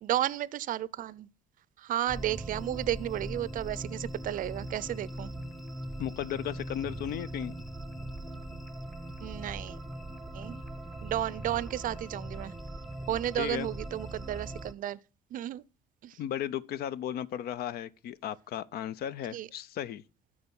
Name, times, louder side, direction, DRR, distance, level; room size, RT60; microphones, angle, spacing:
voice 1, 0.0-1.3 1.8-5.3 9.2-9.8 10.3-10.6 11.0-12.5 13.1-15.0 15.3-15.6 16.0-16.2 19.3-19.5, right 12 dB, 55° right, 0.5 m, -33 dB
sound 1, 2.1-14.7, right 1 dB, ahead, 0.7 m, -40 dB
voice 2, 6.0-7.6 13.4-13.7 16.2-20.0, left 10 dB, 65° left, 0.5 m, -35 dB
12.5 x 4.8 x 5.3 m
cardioid pair, 110°, 17 cm